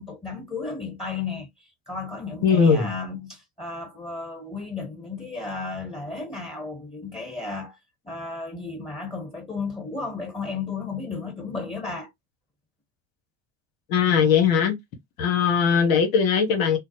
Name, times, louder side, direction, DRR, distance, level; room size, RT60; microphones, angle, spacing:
voice 1, 0.0-7.8 8.0-12.1, left 4 dB, 15° left, 1.2 m, -34 dB
voice 2, 2.4-2.9 13.9-14.8 15.2-16.8, left 6 dB, 80° left, 1.1 m, -19 dB
3.7 x 2.0 x 2.9 m
hypercardioid pair, 60°, 42 cm